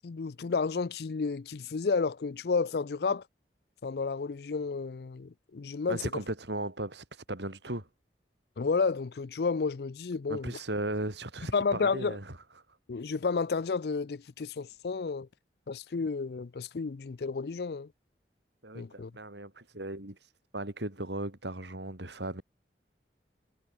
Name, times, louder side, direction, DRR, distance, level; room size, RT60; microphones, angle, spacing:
voice 1, 0.0-3.2 3.8-6.0 8.6-10.6 11.5-12.2 12.9-15.3 15.7-17.9 18.8-19.1, left 4 dB, 65° left, 0.5 m, -31 dB
voice 2, 5.9-7.9 10.3-12.4 18.6-22.4, right 1 dB, 85° right, 4.4 m, -37 dB
head